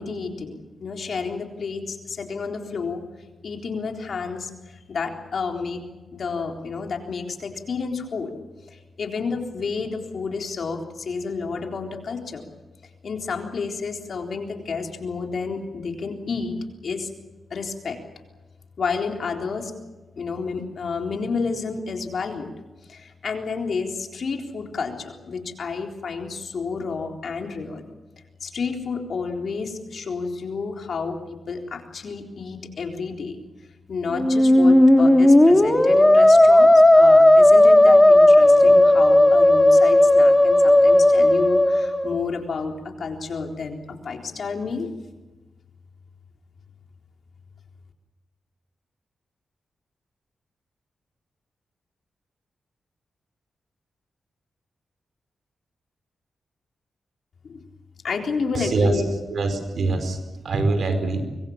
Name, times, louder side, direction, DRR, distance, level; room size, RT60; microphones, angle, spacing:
voice 1, 0.0-3.0 3.4-5.8 6.1-8.3 8.7-12.5 13.0-16.5 16.8-17.1 17.5-18.0 18.8-19.7 20.2-22.5 22.9-27.8 28.4-33.4 33.9-44.9 57.4-57.6 58.0-59.0, left 4 dB, 65° left, 3 dB, 3.8 m, -30 dB
Musical instrument, 34.1-42.2, left 1 dB, 15° left, 2.5 m, -14 dB
voice 2, 58.5-59.0 59.3-61.2, right 3 dB, 70° right, 8 dB, 4.9 m, -24 dB
24.0 x 22.5 x 7.3 m, 1.2 s
cardioid pair, 70°, 0 cm